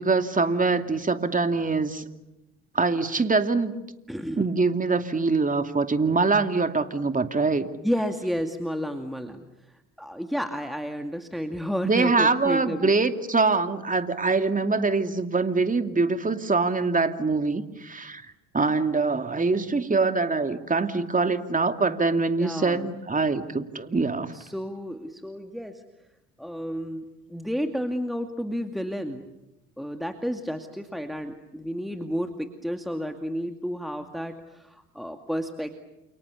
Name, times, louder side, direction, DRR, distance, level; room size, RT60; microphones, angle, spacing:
voice 1, 0.0-2.0 2.7-3.7 4.4-7.7 11.8-18.2 18.5-24.3, right 3 dB, 20° right, 7 dB, 2.7 m, -24 dB
voice 2, 4.1-4.5 7.8-12.9 22.4-22.9 24.3-25.8 26.4-29.3 29.8-35.8, equal, ahead, 5 dB, 2.3 m, -31 dB
29.5 x 28.5 x 7.0 m, 0.97 s
hypercardioid pair, 60°, 39 cm